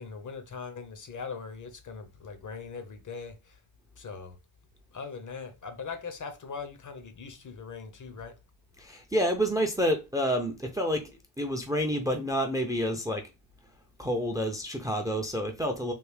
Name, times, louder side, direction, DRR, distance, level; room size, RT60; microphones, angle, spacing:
voice 1, 0.0-3.6 4.0-4.4 4.9-8.4, left 5 dB, 40° left, 0.8 m, -41 dB
voice 2, 8.8-13.3 14.0-15.9, equal, 5° right, 0.5 m, -29 dB
3.5 x 2.3 x 3.2 m
cardioid pair, 90°, 49 cm